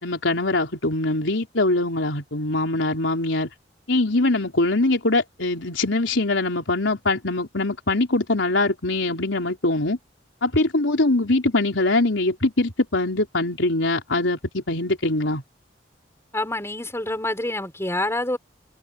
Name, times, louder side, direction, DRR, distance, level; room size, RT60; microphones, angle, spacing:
voice 1, 0.0-3.5 3.9-10.0 10.4-15.4, left 2 dB, 90° left, 3.9 m, -22 dB
voice 2, 16.3-18.4, left 1 dB, 15° left, 5.1 m, -27 dB
head